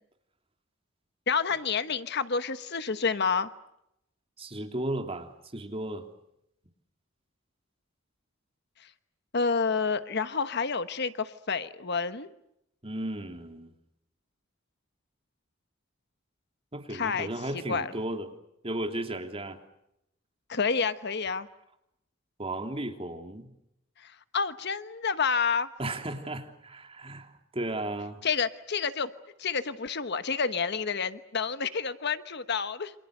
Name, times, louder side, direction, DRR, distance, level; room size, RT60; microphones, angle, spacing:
voice 1, 1.3-3.5 9.3-12.3 16.9-17.9 20.5-21.5 24.0-25.7 28.2-29.1 29.4-32.9, left 5 dB, 55° left, 11 dB, 1.2 m, -29 dB
voice 2, 4.4-6.1 12.8-13.7 16.7-18.3 18.6-19.6 22.4-23.5 25.8-28.2, right 1 dB, 30° right, 4 dB, 3.3 m, -35 dB
29.0 x 26.5 x 6.6 m, 0.82 s
head